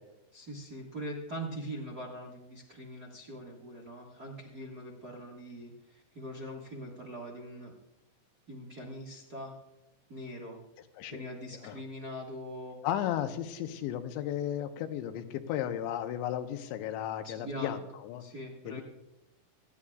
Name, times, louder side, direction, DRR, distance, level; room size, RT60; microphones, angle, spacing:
voice 1, 0.3-7.7 8.5-9.5 10.1-10.6 11.1-12.8 17.2-17.8 18.2-18.8, equal, 70° right, -1 dB, 0.9 m, -42 dB
voice 2, 12.8-18.2 18.7-18.8, left 10 dB, 90° left, 7 dB, 3.1 m, -34 dB
27.0 x 9.9 x 2.4 m, 0.95 s
omnidirectional pair, 5.1 m